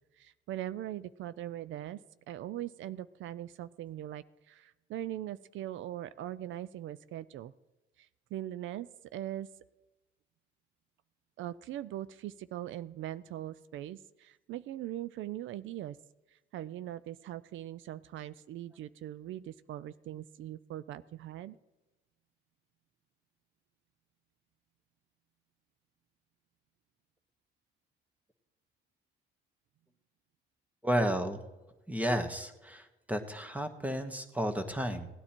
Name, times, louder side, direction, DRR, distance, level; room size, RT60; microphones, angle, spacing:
voice 1, 0.2-2.0 2.3-7.5 8.0-8.9 9.1-9.5 11.4-16.0 16.5-21.6, right 12 dB, 75° right, 17 dB, 0.4 m, -41 dB
voice 2, 30.8-31.4 31.9-35.1, equal, 5° right, 7 dB, 1.5 m, -32 dB
17.5 x 9.8 x 4.4 m, 1.1 s
cardioid pair, 90°, 20 cm